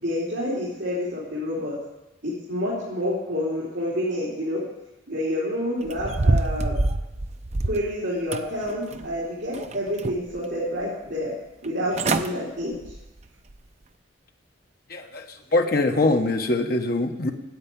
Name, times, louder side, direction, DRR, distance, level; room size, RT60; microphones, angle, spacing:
voice 1, 0.0-1.7 2.2-4.6 5.1-6.8 7.6-11.3 11.6-12.8, equal, 60° right, -7 dB, 3.1 m, -28 dB
sound 1, 5.9-7.9 8.3-9.1 9.5-10.4 10.8-10.9 11.6-11.7 11.9-12.3 12.7-13.0 13.5-13.6, right 2 dB, 35° right, 0.5 m, -26 dB
voice 2, 14.9-15.2 15.5-17.3, left 2 dB, 50° left, 4 dB, 1.1 m, -23 dB
9.6 x 8.4 x 8.5 m, 0.99 s
head